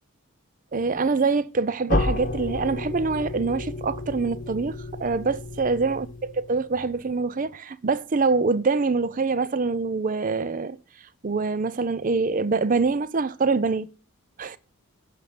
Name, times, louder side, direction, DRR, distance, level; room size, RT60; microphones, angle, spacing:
voice 1, 0.7-10.8 11.2-13.9 14.4-14.6, right 4 dB, 35° right, 0.5 m, -25 dB
sound 1, 1.9-6.7, left 2 dB, 35° left, 1.3 m, -31 dB
9.8 x 6.8 x 8.3 m
head